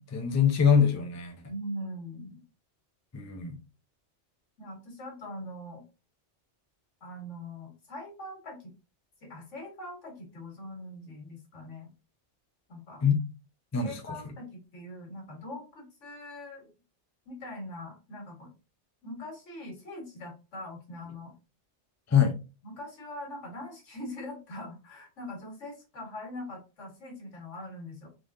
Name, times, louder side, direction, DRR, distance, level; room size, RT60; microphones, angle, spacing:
voice 1, 0.1-1.3 3.1-3.6 13.0-13.2 13.7-14.2 22.1-22.3, left 7 dB, 25° left, 0.4 m, -24 dB
voice 2, 1.4-2.4 4.6-5.8 7.0-8.7 9.2-11.9 12.7-13.0 13.8-16.7 17.3-18.5 19.0-21.3 22.2-22.3 22.6-28.1, left 1 dB, 80° left, 1.8 m, -42 dB
3.8 x 3.2 x 2.6 m
omnidirectional pair, 1.2 m